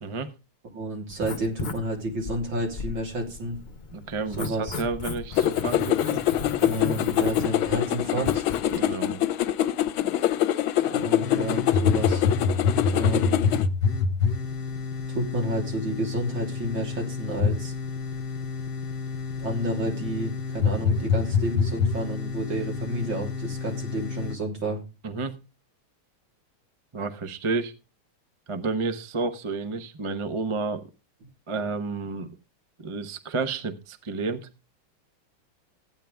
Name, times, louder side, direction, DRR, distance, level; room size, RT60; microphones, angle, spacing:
voice 1, 0.0-0.3 3.9-6.2 8.7-9.2 25.0-25.3 26.9-27.7 28.5-30.8 31.5-32.3 32.8-34.5, right 3 dB, 30° right, 8 dB, 0.6 m, -30 dB
voice 2, 0.7-3.6 4.4-4.8 6.6-8.4 10.8-12.3 12.9-13.5 15.1-17.7 19.4-24.8, right 1 dB, 65° right, 0 dB, 4.2 m, -30 dB
Writing, 1.1-8.8, left 4 dB, 35° left, 0.8 m, -36 dB
sound 1, 5.4-13.7, left 12 dB, 75° left, 1.5 m, -25 dB
sound 2, 11.2-24.4, left 5 dB, 55° left, 1.5 m, -27 dB
15.0 x 9.1 x 3.5 m, 0.30 s
omnidirectional pair, 2.3 m